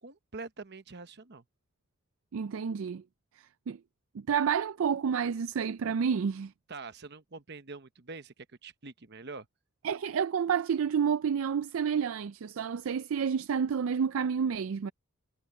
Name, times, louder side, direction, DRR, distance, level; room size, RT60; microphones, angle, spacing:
voice 1, 0.0-1.4 6.7-9.5, right 3 dB, 50° right, 1.0 m, -45 dB
voice 2, 2.3-3.0 3.4-3.8 4.1-6.5 9.8-14.9, right 7 dB, 65° right, 0.4 m, -29 dB
head